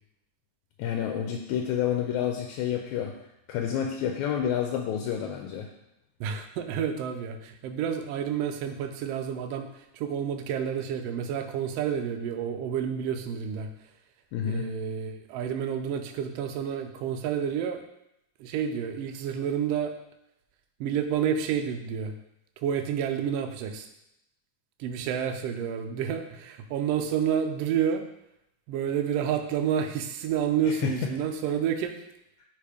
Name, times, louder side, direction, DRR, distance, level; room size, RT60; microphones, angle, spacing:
voice 1, 0.8-3.1 3.5-5.7 14.3-14.7 30.7-31.1, left 9 dB, 80° left, 2 dB, 1.9 m, -29 dB
voice 2, 6.2-13.7 14.4-17.8 18.4-19.9 20.8-22.1 22.6-23.9 24.8-28.0 28.7-31.9, right 8 dB, 90° right, 6 dB, 1.3 m, -29 dB
5.8 x 3.7 x 4.9 m, 0.82 s
omnidirectional pair, 3.5 m